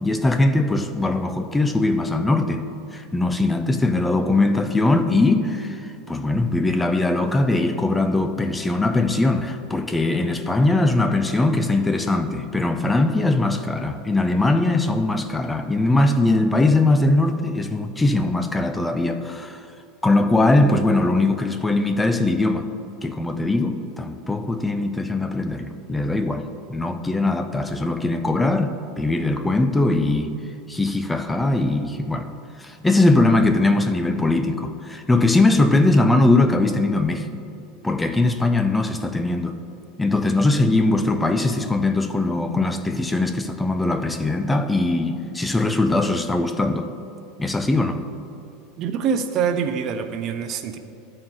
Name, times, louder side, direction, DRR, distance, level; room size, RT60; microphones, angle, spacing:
voice 1, 0.0-2.6 2.9-19.6 20.0-22.7 23.0-26.4 26.7-30.3 30.7-32.3 32.6-37.3 37.8-39.5 40.0-46.9 47.4-48.0, left 2 dB, 10° left, 8 dB, 0.5 m, -21 dB
voice 2, 48.8-50.8, right 7 dB, 45° right, 8 dB, 0.6 m, -25 dB
12.5 x 4.4 x 3.8 m, 2.7 s
supercardioid pair, 130°, 0 cm